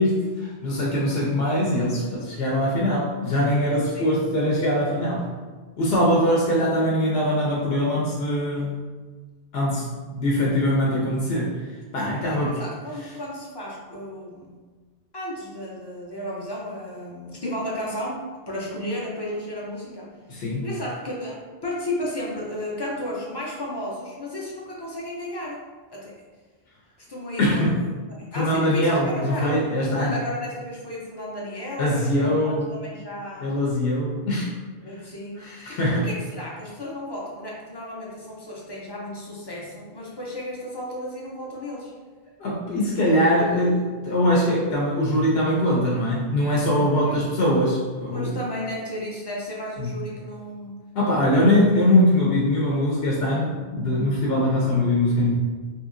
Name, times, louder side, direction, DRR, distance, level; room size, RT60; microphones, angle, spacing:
voice 1, 0.0-5.3 5.8-8.8 9.5-11.6 11.9-12.6 20.3-20.7 27.4-27.8 28.3-30.2 31.8-32.7 33.4-34.5 35.4-36.1 42.4-48.3 49.8-49.9 51.0-55.3, left 1 dB, 75° left, -4 dB, 0.8 m, -22 dB
voice 2, 12.3-14.6 15.1-25.6 25.9-26.1 27.0-27.6 28.1-33.5 34.8-41.9 47.0-47.3 48.1-50.9, left 1 dB, 35° left, -4 dB, 0.4 m, -33 dB
2.9 x 2.7 x 2.4 m, 1.4 s
omnidirectional pair, 1.0 m